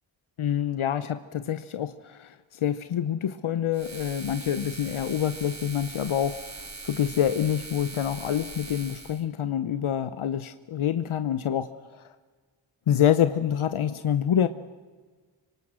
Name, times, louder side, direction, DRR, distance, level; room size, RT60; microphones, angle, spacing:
voice 1, 0.4-12.1 12.9-14.5, left 9 dB, 75° left, 11 dB, 0.9 m, -27 dB
sound 1, 3.7-9.2, right 3 dB, 35° right, 2.2 m, -41 dB
26.0 x 24.5 x 6.3 m, 1.4 s
wide cardioid pair, 75°, 49 cm